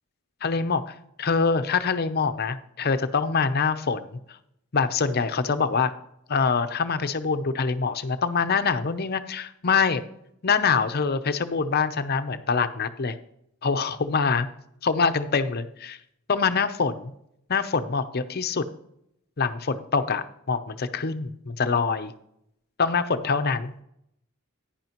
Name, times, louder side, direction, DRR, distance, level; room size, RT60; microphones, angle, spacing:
voice 1, 0.4-4.2 4.7-5.9 6.3-10.0 10.4-13.2 13.6-14.5 14.8-16.0 16.3-17.1 17.5-18.6 19.4-22.1 22.8-23.7, left 5 dB, 50° left, 10 dB, 0.7 m, -25 dB
11.0 x 10.0 x 3.0 m, 0.76 s
head